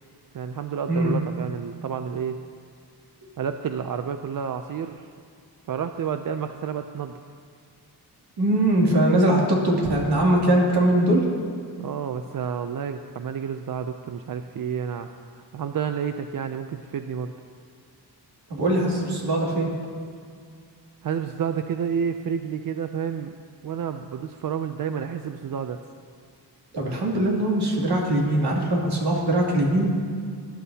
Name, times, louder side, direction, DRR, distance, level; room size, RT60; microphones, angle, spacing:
voice 1, 0.3-2.4 3.4-5.1 5.7-7.2 11.8-15.1 15.5-17.3 21.0-23.3 23.6-25.8, right 7 dB, 55° right, 8 dB, 0.5 m, -30 dB
voice 2, 8.4-11.2 18.5-19.7 26.7-29.9, right 1 dB, 75° right, -2 dB, 2.7 m, -21 dB
21.0 x 11.5 x 2.8 m, 2.2 s
wide cardioid pair, 145°, 40 cm